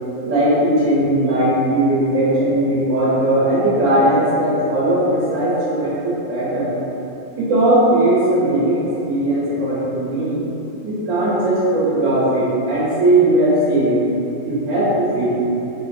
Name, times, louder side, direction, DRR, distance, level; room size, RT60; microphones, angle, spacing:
voice 1, 0.2-6.8 7.3-10.4 10.8-14.0 14.4-15.3, right 1 dB, 70° right, -8 dB, 1.2 m, -18 dB
2.9 x 2.5 x 2.4 m, 2.9 s
omnidirectional pair, 1.4 m